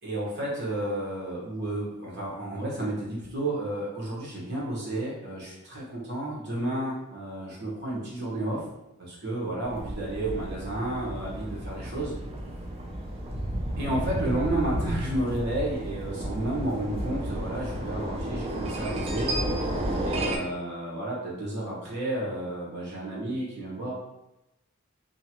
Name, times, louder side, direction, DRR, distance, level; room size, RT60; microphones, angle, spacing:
voice 1, 0.0-8.6 9.0-12.1 13.8-19.3 20.0-23.9, right 1 dB, 55° right, -6 dB, 1.1 m, -32 dB
sound 1, 9.6-20.4, right 1 dB, 30° right, 0.4 m, -32 dB
2.7 x 2.2 x 2.9 m, 0.93 s
head